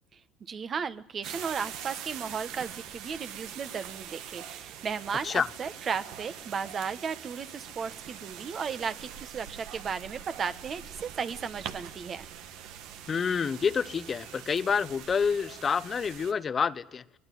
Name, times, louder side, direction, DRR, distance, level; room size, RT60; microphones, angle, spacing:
voice 1, 0.5-12.2, right 6 dB, 40° right, 1.4 m, -35 dB
sound 1, 1.2-16.3, right 9 dB, 70° right, 1.7 m, -43 dB
voice 2, 13.1-17.0, left 6 dB, 35° left, 1.0 m, -28 dB
21.5 x 21.5 x 9.3 m
supercardioid pair, 95°, 0 cm